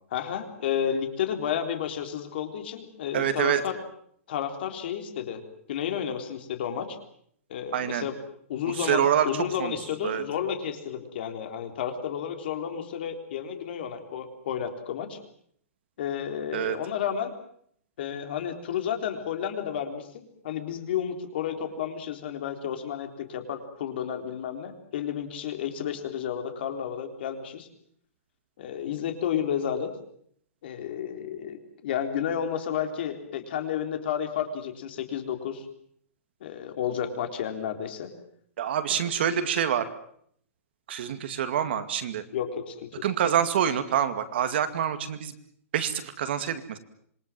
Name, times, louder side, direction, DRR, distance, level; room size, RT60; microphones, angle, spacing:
voice 1, 0.1-3.8 4.3-5.4 5.7-7.0 7.5-8.1 8.5-15.2 16.0-17.3 18.0-27.7 28.6-29.9 30.6-35.7 36.4-38.1 42.3-42.9, left 8 dB, 45° left, 6 dB, 3.9 m, -31 dB
voice 2, 3.1-3.6 7.7-8.1 8.7-9.3 9.6-9.7 10.0-10.2 16.5-16.8 38.6-39.9 40.9-42.2 43.0-45.3 45.7-46.8, right 9 dB, 45° right, 9 dB, 2.2 m, -26 dB
26.5 x 23.0 x 7.6 m, 0.66 s
hypercardioid pair, 175°, 8 cm